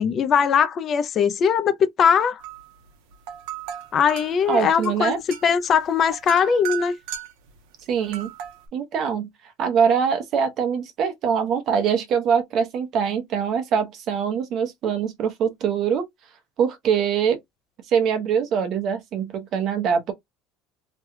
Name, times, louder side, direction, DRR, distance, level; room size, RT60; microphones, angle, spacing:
voice 1, 0.0-2.4 3.9-7.0, left 7 dB, 35° left, 0.4 m, -20 dB
sound 1, 2.4-2.8 3.1-7.5 8.0-8.6, right 11 dB, 75° right, 1.0 m, -36 dB
voice 2, 4.5-5.2 7.9-8.3 8.7-9.3 9.6-16.1 16.6-17.4 17.9-20.1, right 7 dB, 45° right, 0.9 m, -23 dB
3.1 x 2.3 x 3.1 m
cardioid pair, 140°, 0 cm